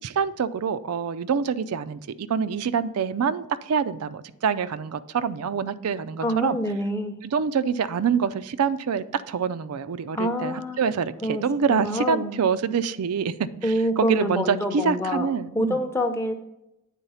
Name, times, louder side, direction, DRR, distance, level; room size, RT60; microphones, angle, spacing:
voice 1, 0.0-6.6 7.2-15.8, right 6 dB, 85° right, 0.4 m, -26 dB
voice 2, 6.2-7.2 10.1-10.8 11.2-11.4 11.7-12.4 13.6-15.3 15.5-16.3, equal, 10° left, 0.6 m, -26 dB
9.1 x 4.0 x 5.5 m
head